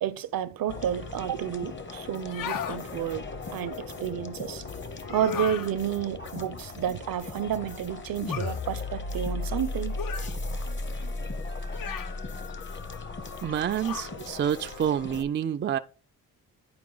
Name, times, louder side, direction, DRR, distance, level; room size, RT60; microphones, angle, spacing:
voice 1, 0.0-3.3 3.5-4.6 5.1-9.9, right 10 dB, 65° right, 0.7 m, -31 dB
sound 1, 0.7-15.2, left 3 dB, 30° left, 0.8 m, -36 dB
sound 2, 2.2-2.8 5.0-5.7 8.3-8.6 10.0-10.4 11.7-12.2 13.8-14.2, left 8 dB, 65° left, 0.6 m, -35 dB
sound 3, 4.8-6.6 8.1-10.0 10.4-12.5, left 2 dB, 85° left, 4.4 m, -60 dB
voice 2, 13.4-15.8, right 9 dB, 30° right, 0.4 m, -28 dB
9.6 x 4.5 x 3.8 m
cardioid pair, 75°, 37 cm